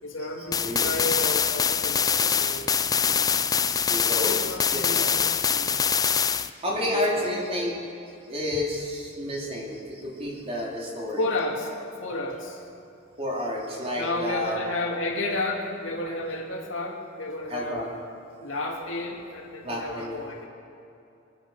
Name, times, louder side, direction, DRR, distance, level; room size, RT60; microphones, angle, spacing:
voice 1, 0.0-2.8 4.1-5.2 5.5-5.8 6.9-7.2 11.2-11.7 12.0-12.7 13.9-17.8 18.4-20.4, left 2 dB, 80° left, -1 dB, 2.5 m, -32 dB
sound 1, 0.5-6.5, left 7 dB, 20° left, 0.4 m, -24 dB
voice 2, 2.7-4.4 4.7-5.2 6.6-7.7 8.2-11.3 13.2-14.9 17.5-17.9 19.6-20.1, left 1 dB, 30° right, -3 dB, 3.1 m, -31 dB
24.0 x 9.5 x 5.6 m, 2.7 s
head